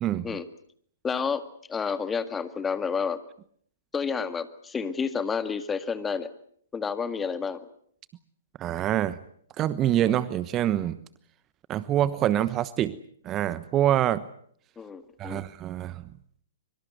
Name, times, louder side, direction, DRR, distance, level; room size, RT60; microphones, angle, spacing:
voice 1, 0.0-0.4 8.6-9.2 9.6-11.0 11.7-13.0 13.2-14.2 15.2-16.0, right 12 dB, 25° right, 16 dB, 1.1 m, -25 dB
voice 2, 1.0-3.2 3.9-6.3 6.7-7.6 14.8-15.4, left 5 dB, 15° left, 11 dB, 1.9 m, -30 dB
24.5 x 24.5 x 8.1 m, 0.63 s
figure-of-eight pair, 115°, 0 cm